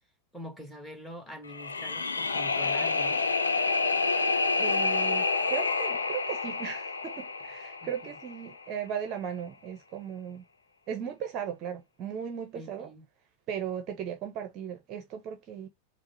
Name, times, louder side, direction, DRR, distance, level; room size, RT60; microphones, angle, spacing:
voice 1, 0.3-3.3 7.8-8.2 12.5-13.0, equal, 5° left, 1.3 m, -44 dB
sound 1, 1.5-8.6, left 4 dB, 75° left, 0.5 m, -28 dB
voice 2, 4.6-10.4 10.9-12.9 13.5-15.7, right 8 dB, 35° right, 0.7 m, -37 dB
4.7 x 2.1 x 2.8 m
figure-of-eight pair, 90°, 0 cm